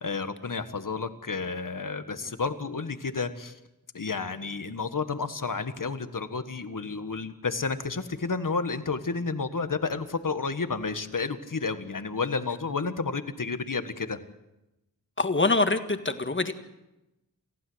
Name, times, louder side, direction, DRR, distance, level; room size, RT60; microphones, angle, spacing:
voice 1, 0.0-3.6 3.9-14.2, left 4 dB, 60° left, 10 dB, 1.6 m, -31 dB
voice 2, 15.2-16.5, left 3 dB, 30° left, 8 dB, 1.8 m, -25 dB
28.5 x 15.5 x 8.0 m, 0.95 s
wide cardioid pair, 85°, 36 cm